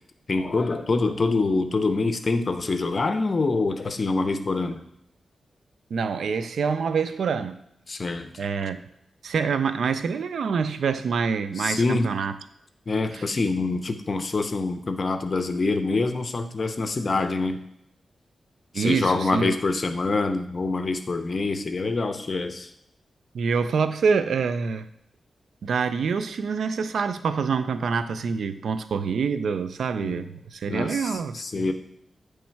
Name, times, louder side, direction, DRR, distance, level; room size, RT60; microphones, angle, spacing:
voice 1, 0.3-4.8 7.9-8.3 11.6-12.1 12.9-17.6 18.7-22.7 30.0-30.2 30.7-31.7, left 3 dB, 40° left, 7 dB, 0.6 m, -25 dB
voice 2, 5.9-7.6 8.4-8.8 9.2-12.4 13.1-13.3 18.7-19.5 23.3-24.9 25.6-31.7, right 5 dB, 90° right, 11 dB, 0.4 m, -26 dB
8.5 x 3.2 x 4.5 m, 0.77 s
wide cardioid pair, 120°, 0 cm